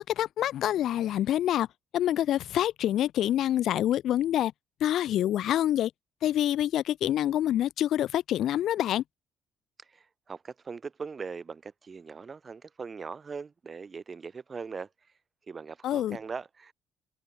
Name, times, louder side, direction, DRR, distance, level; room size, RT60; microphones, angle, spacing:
voice 1, 0.0-1.7 1.9-4.5 4.8-5.9 6.2-9.0 15.8-16.2, left 12 dB, 60° left, 0.6 m, -26 dB
voice 2, 9.9-14.9 15.5-16.7, right 5 dB, 30° right, 1.4 m, -40 dB
cardioid pair, 130°, 0 cm